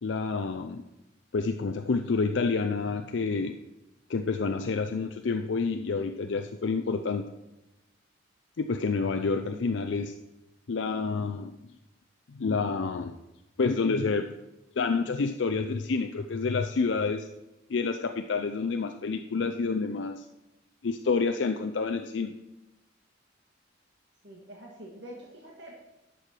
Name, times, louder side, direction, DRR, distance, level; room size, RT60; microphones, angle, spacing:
voice 1, 0.0-0.8 1.3-3.5 4.1-7.2 8.6-10.1 10.7-11.5 12.3-13.2 13.6-14.3 14.8-17.3 17.7-20.2 20.8-22.3, left 4 dB, 70° left, 6 dB, 0.5 m, -28 dB
voice 2, 24.2-25.7, equal, 65° right, -1 dB, 1.7 m, -45 dB
11.5 x 6.4 x 4.5 m, 0.98 s
head